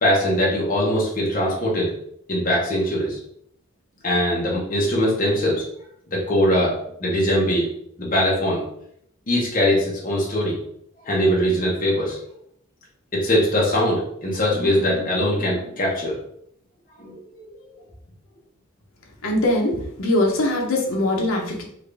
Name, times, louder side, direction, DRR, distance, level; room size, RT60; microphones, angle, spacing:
voice 1, 0.0-1.9 2.3-3.2 4.0-5.6 6.1-7.7 8.0-8.6 9.3-10.6 11.0-12.2 13.1-16.1 17.0-17.5, equal, 40° left, -4 dB, 1.0 m, -21 dB
voice 2, 19.2-21.6, left 1 dB, 75° left, -1 dB, 0.8 m, -22 dB
3.6 x 2.5 x 3.4 m, 0.70 s
head